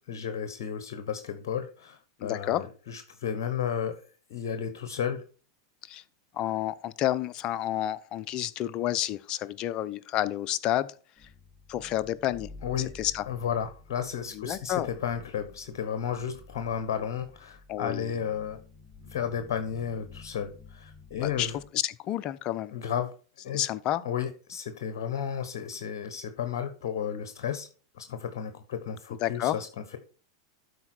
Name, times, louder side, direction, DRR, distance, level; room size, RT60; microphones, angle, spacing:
voice 1, 0.1-4.0 4.3-5.2 12.6-12.9 13.3-18.6 19.1-21.6 22.7-23.1 23.4-23.7 24.0-27.7 27.9-29.7, left 8 dB, 65° left, 1.0 m, -33 dB
voice 2, 2.2-2.6 5.8-6.0 6.3-10.9 11.7-12.5 12.8-13.2 14.3-14.9 17.7-18.1 21.2-22.7 23.5-24.0 29.2-29.6, left 13 dB, 40° left, 0.6 m, -30 dB
sound 1, 11.2-21.7, left 3 dB, 10° left, 4.8 m, -51 dB
12.5 x 4.8 x 4.4 m
hypercardioid pair, 100°, 2 cm